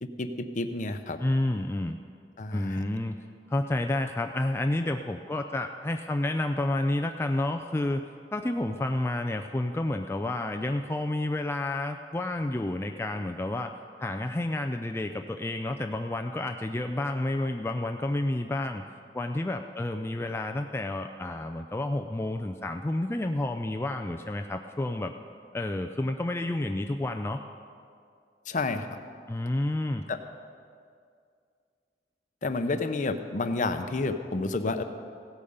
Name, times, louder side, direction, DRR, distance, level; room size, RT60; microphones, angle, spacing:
voice 1, 0.0-1.2 2.4-2.8 28.5-29.0 30.1-30.2 32.4-34.8, left 3 dB, 45° left, 8 dB, 0.7 m, -30 dB
voice 2, 1.2-2.0 2.5-8.0 8.3-18.8 19.1-25.1 25.5-27.4 29.3-30.0, left 1 dB, 15° left, 5 dB, 0.4 m, -30 dB
16.5 x 8.6 x 5.5 m, 2.3 s
head